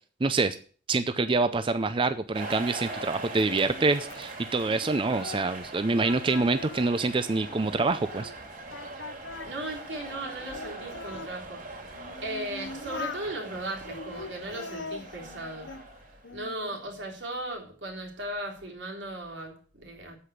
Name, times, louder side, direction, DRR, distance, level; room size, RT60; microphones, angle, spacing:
voice 1, 0.2-0.6 0.9-8.3, right 3 dB, 30° right, 0.5 m, -26 dB
Singing, 1.2-5.7 6.0-8.4 8.7-11.3 11.9-13.3 13.8-15.9 16.2-16.8, left 3 dB, 85° left, 0.9 m, -43 dB
sound 1, 2.3-16.5, right 2 dB, 50° right, 3.2 m, -41 dB
voice 2, 9.4-11.6 12.2-15.7 16.3-20.2, right 1 dB, 80° right, 3.5 m, -37 dB
8.4 x 7.7 x 8.0 m
head